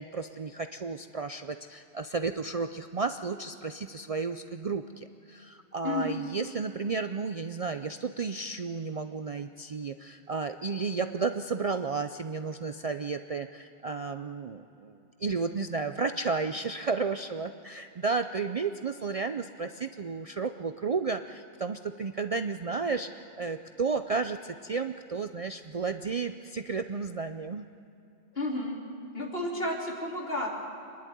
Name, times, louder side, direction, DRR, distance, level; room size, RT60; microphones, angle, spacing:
voice 1, 0.0-27.7, right 4 dB, 45° right, 8 dB, 0.5 m, -33 dB
voice 2, 5.8-6.2 28.3-28.8 29.1-30.5, left 2 dB, 60° left, -2 dB, 3.6 m, -31 dB
26.0 x 11.0 x 9.3 m, 2.7 s
omnidirectional pair, 1.1 m